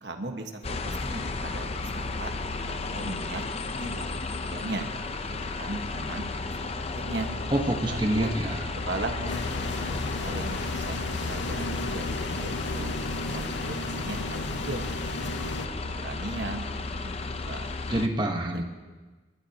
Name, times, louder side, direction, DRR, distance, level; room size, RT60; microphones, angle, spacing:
voice 1, 0.0-2.3 2.7-3.4 3.7-4.9 5.3-7.3 7.9-8.3 8.7-9.6 10.0-12.9 13.3-14.9 15.2-15.5 15.8-17.7 18.5-18.6, right 2 dB, 75° right, 4 dB, 1.5 m, -38 dB
sound 1, 0.6-18.1, left 3 dB, 35° left, 0.7 m, -34 dB
voice 2, 7.5-8.6 17.9-18.6, right 1 dB, 25° right, 1 dB, 1.2 m, -26 dB
sound 2, 9.3-15.7, left 2 dB, 85° left, 0.9 m, -34 dB
29.5 x 13.0 x 2.9 m, 1.3 s
head